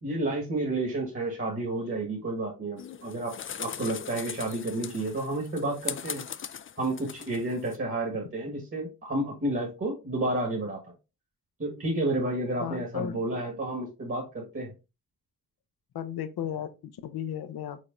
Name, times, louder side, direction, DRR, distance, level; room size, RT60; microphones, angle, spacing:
voice 1, 0.0-6.3 6.8-10.8 11.6-14.7, right 2 dB, 35° right, 1.5 m, -31 dB
birds taking off to fly, 2.8-7.8, left 8 dB, 35° left, 0.4 m, -40 dB
voice 2, 12.6-13.3 15.9-17.8, left 9 dB, 70° left, 0.7 m, -35 dB
5.0 x 4.1 x 2.5 m
supercardioid pair, 45°, 39 cm